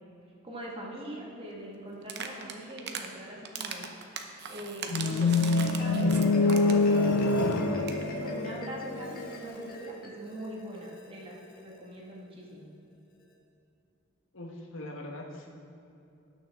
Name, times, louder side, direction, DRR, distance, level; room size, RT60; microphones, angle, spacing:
voice 1, 0.4-3.8 4.5-11.3 11.6-12.7, right 1 dB, 30° right, -3 dB, 1.8 m, -42 dB
sound 1, 2.0-3.1 3.4-6.9 7.2-7.3 7.5-7.6 7.8-8.0, right 6 dB, 55° right, 0.8 m, -38 dB
sound 2, 4.9-9.0, left 3 dB, 85° left, 0.4 m, -25 dB
Marimba xylophone, 5.3-11.8, left 1 dB, 45° left, 1.6 m, -39 dB
voice 2, 14.3-15.5, left 1 dB, 70° left, 0 dB, 1.4 m, -41 dB
17.5 x 6.4 x 3.7 m, 2.7 s
head